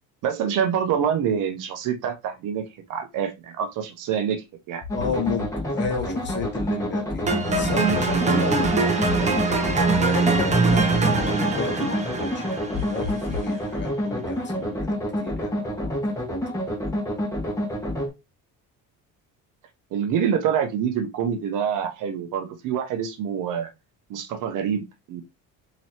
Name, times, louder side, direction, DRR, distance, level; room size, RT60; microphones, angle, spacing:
voice 1, 0.2-4.8 19.9-23.7 24.1-25.2, right 8 dB, 60° right, 0.8 m, -26 dB
sound 1, 4.8-5.5 5.8-6.5 7.2-8.2 9.1-10.0 10.3-11.0 12.7-13.5, left 7 dB, 80° left, 0.9 m, -34 dB
voice 2, 4.9-8.7 9.2-9.5 9.9-16.0, left 4 dB, 30° left, 1.2 m, -32 dB
sound 2, 4.9-18.1, equal, 10° left, 1.5 m, -28 dB
sound 3, 7.3-13.4, right 3 dB, 20° right, 0.7 m, -23 dB
4.3 x 3.0 x 2.9 m
cardioid pair, 120°, 35 cm